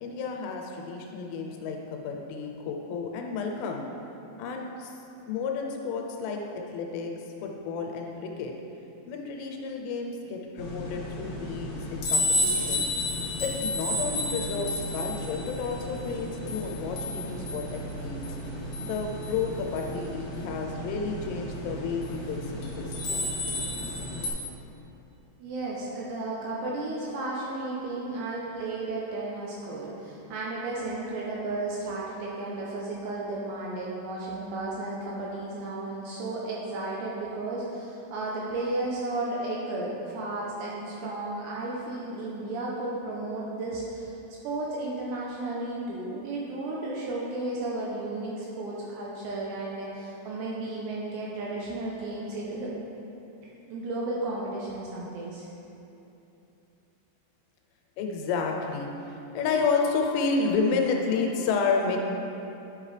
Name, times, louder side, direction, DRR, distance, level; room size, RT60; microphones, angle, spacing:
voice 1, 0.0-3.8 4.4-4.9 5.3-6.4 6.7-7.1 7.4-8.5 9.1-12.9 13.4-18.2 18.8-23.3 58.0-62.0, left 4 dB, 85° left, 2 dB, 3.2 m, -31 dB
sound 1, 10.6-24.3, left 1 dB, 60° left, 2.2 m, -32 dB
voice 2, 25.4-44.1 44.4-52.7 53.7-55.5, right 2 dB, 80° right, -4 dB, 2.6 m, -33 dB
9.8 x 5.9 x 3.3 m, 2.9 s
omnidirectional pair, 5.6 m